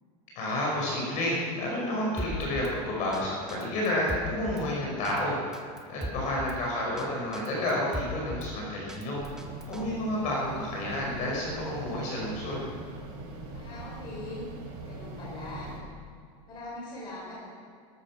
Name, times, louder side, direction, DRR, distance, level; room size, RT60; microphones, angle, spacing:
voice 1, 0.4-5.4 5.9-9.2 9.7-12.6, left 1 dB, 40° left, -3 dB, 5.2 m, -30 dB
Drum kit, 2.2-2.7 3.1-3.2 3.5-4.7 5.0-5.2 5.5-6.6 7.0-7.1 7.3-8.5 8.9-9.8, equal, 5° right, 0.7 m, -37 dB
voice 2, 6.0-6.4 13.5-14.4 14.8-15.7 16.5-17.5, left 2 dB, 20° left, -5 dB, 5.3 m, -41 dB
sound 1, 9.2-15.8, right 2 dB, 55° right, 3.9 m, -42 dB
18.0 x 13.5 x 5.9 m, 2.2 s
supercardioid pair, 175°, 20 cm